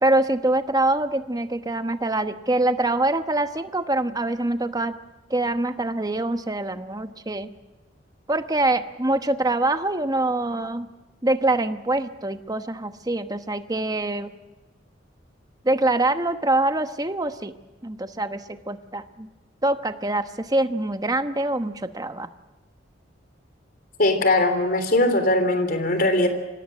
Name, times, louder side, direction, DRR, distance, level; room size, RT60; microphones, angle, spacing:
voice 1, 0.0-5.0 5.3-7.5 8.3-10.9 11.2-14.3 15.6-17.5 17.8-19.3 19.6-22.3, right 2 dB, 20° right, 9 dB, 1.1 m, -24 dB
voice 2, 24.0-26.3, left 2 dB, 50° left, 8 dB, 3.5 m, -20 dB
25.5 x 18.0 x 7.7 m, 1.2 s
head